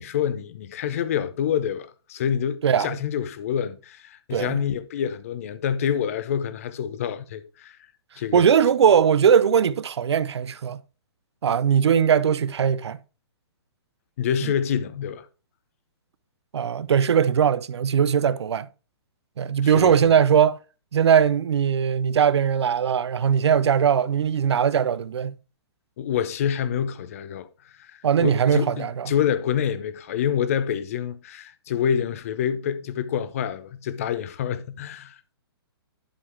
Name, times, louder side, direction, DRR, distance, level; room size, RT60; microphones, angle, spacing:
voice 1, 0.0-7.8 8.2-8.5 14.2-15.3 19.6-20.1 26.0-27.5 27.8-35.3, left 8 dB, 35° left, 0.6 m, -27 dB
voice 2, 2.6-3.0 4.3-4.6 8.3-10.8 11.4-13.0 14.4-14.5 16.5-18.7 19.4-20.6 20.9-25.3 28.0-29.1, right 8 dB, 90° right, 0.6 m, -20 dB
11.5 x 3.9 x 4.5 m
hypercardioid pair, 170°, 14 cm